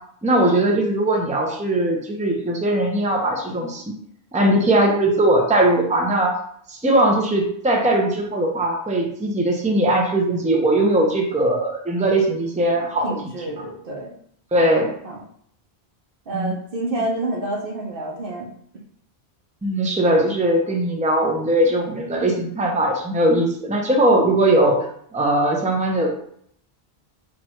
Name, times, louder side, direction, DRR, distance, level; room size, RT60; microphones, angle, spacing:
voice 1, 0.2-3.8 4.3-6.3 6.7-13.1 14.5-14.9 16.3-16.5 19.6-24.8 25.1-26.1, right 1 dB, 10° right, 0 dB, 0.6 m, -19 dB
voice 2, 12.7-14.1 14.6-15.2 16.3-18.5, right 2 dB, 65° right, -1 dB, 1.0 m, -29 dB
4.4 x 2.6 x 4.4 m, 0.65 s
omnidirectional pair, 1.0 m